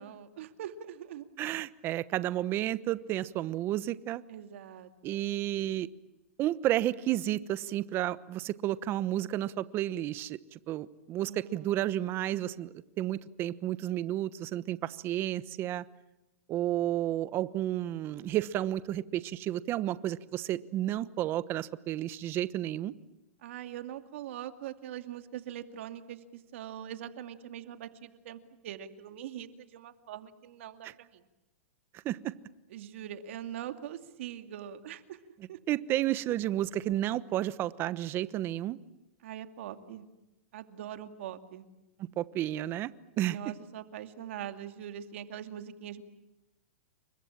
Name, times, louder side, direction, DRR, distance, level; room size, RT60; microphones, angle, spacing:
voice 1, 0.0-1.3 4.3-5.3 11.2-11.9 23.4-31.2 32.7-35.2 35.5-35.6 39.2-40.0 40.5-41.7 43.3-46.0, right 10 dB, 65° right, 7 dB, 2.5 m, -42 dB
voice 2, 1.4-4.2 5.0-5.9 6.4-15.8 16.5-22.9 30.8-30.9 32.0-32.3 35.7-38.8 42.0-42.9 43.2-43.4, right 13 dB, 30° right, 16 dB, 1.1 m, -31 dB
29.5 x 24.5 x 7.4 m, 0.98 s
hypercardioid pair, 140°, 7 cm